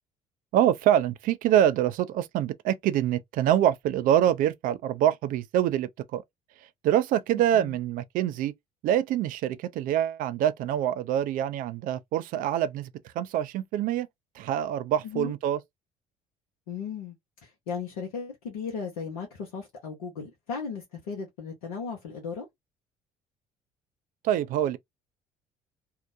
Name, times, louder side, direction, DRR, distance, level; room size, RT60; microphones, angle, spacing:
voice 1, 0.5-6.2 6.8-8.5 8.8-14.1 14.4-15.6 24.2-24.8, right 11 dB, 50° right, 0.4 m, -25 dB
voice 2, 16.7-17.1 17.4-22.5, left 5 dB, 70° left, 0.7 m, -36 dB
2.7 x 2.1 x 2.4 m
figure-of-eight pair, 55°, 18 cm